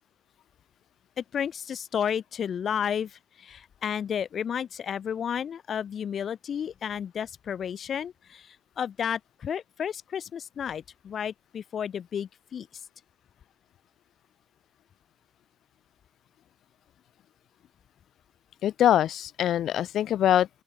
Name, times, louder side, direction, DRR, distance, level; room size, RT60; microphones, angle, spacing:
voice 1, 1.2-12.7, left 8 dB, 55° left, 2.4 m, -32 dB
voice 2, 18.6-20.6, left 11 dB, 75° left, 0.9 m, -23 dB
open air
cardioid pair, 90°, 0 cm